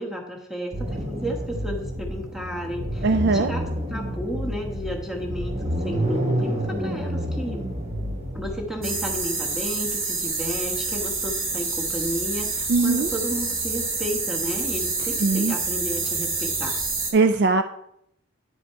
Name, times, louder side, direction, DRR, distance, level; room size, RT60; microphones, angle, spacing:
voice 1, 0.0-7.7 8.3-16.8, equal, ahead, 0 dB, 1.2 m, -33 dB
sound 1, 0.7-10.1, equal, 30° right, 1.0 m, -29 dB
voice 2, 3.0-3.5 12.7-13.1 15.2-15.5 17.1-17.6, right 3 dB, 50° right, 8 dB, 0.4 m, -20 dB
sound 2, 8.8-17.1, right 4 dB, 85° right, 2.3 m, -27 dB
9.9 x 5.0 x 4.6 m, 0.77 s
head